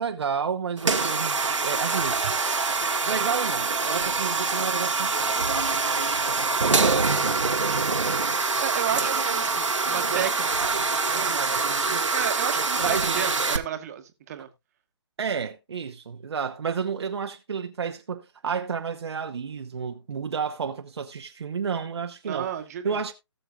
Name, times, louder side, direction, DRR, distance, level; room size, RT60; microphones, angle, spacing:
voice 1, 0.0-2.4 2.8-6.7 9.0-9.4 9.9-13.6 15.2-22.5 22.8-23.1, right 6 dB, 60° right, 0.9 m, -32 dB
sound 1, 0.8-13.6, right 4 dB, 85° right, 1.3 m, -25 dB
voice 2, 8.6-10.5 12.1-14.5 22.2-23.0, right 10 dB, 30° right, 1.3 m, -32 dB
18.5 x 6.7 x 2.3 m
figure-of-eight pair, 150°, 16 cm